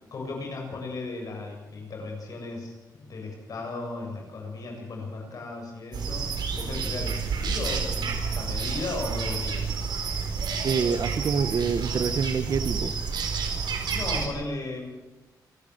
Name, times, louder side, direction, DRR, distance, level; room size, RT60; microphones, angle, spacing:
voice 1, 0.1-9.6 13.9-14.9, left 3 dB, 55° left, 1 dB, 7.4 m, -36 dB
sound 1, 5.9-14.3, right 5 dB, 85° right, 4.4 m, -29 dB
voice 2, 10.6-12.9, right 6 dB, 55° right, 13 dB, 1.2 m, -26 dB
28.0 x 13.5 x 7.8 m, 1.1 s
wide cardioid pair, 155°, 7 cm